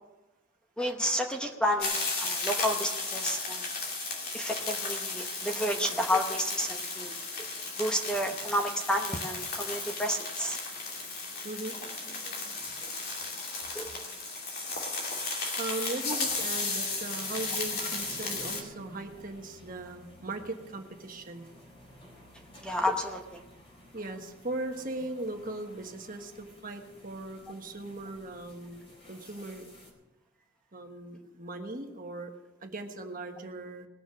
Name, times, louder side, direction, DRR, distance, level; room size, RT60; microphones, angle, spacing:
voice 1, 0.8-3.7 4.3-7.1 7.4-7.5 7.8-10.6 13.7-13.9 22.6-23.4, equal, 5° left, 3 dB, 0.9 m, -31 dB
sound 1, 1.8-18.6, left 3 dB, 45° left, 2.7 m, -34 dB
voice 2, 11.4-13.0 15.2-21.5 23.9-29.7 30.7-32.3 32.6-33.9, right 2 dB, 40° right, 4 dB, 1.3 m, -39 dB
sound 2, 16.2-29.9, left 1 dB, 30° left, 4.3 m, -52 dB
20.0 x 7.1 x 6.2 m, 1.1 s
head